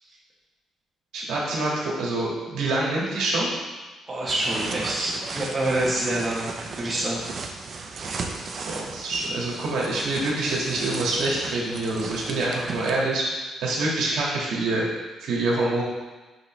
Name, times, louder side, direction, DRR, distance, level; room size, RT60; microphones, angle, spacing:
voice 1, 1.1-3.5 8.5-14.9 15.2-15.8, right 2 dB, 70° right, -4 dB, 1.7 m, -26 dB
voice 2, 4.1-7.2, right 1 dB, 15° right, -7 dB, 1.0 m, -26 dB
sound 1, 4.3-13.0, right 4 dB, 35° right, 0.5 m, -36 dB
6.5 x 5.4 x 3.1 m, 1.2 s
cardioid pair, 180°, 0 cm